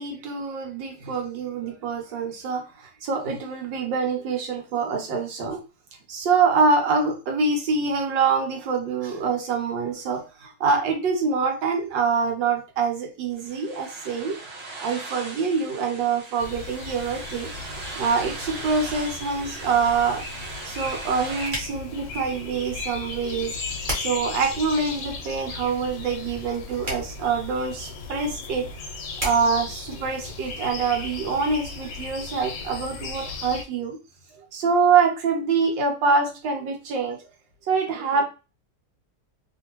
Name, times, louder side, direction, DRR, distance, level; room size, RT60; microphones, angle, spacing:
voice 1, 0.0-5.6 6.1-14.4 14.8-17.5 18.0-20.2 20.6-23.5 23.9-28.7 29.2-34.0 34.5-37.2 37.7-38.2, right 5 dB, 85° right, 3 dB, 1.5 m, -25 dB
sound 1, 13.4-21.5, right 3 dB, 50° right, 1.1 m, -39 dB
sound 2, 16.4-33.6, left 4 dB, 75° left, 1.3 m, -36 dB
sound 3, 20.7-30.7, equal, 30° right, 1.2 m, -39 dB
3.1 x 2.6 x 2.9 m, 0.30 s
omnidirectional pair, 2.0 m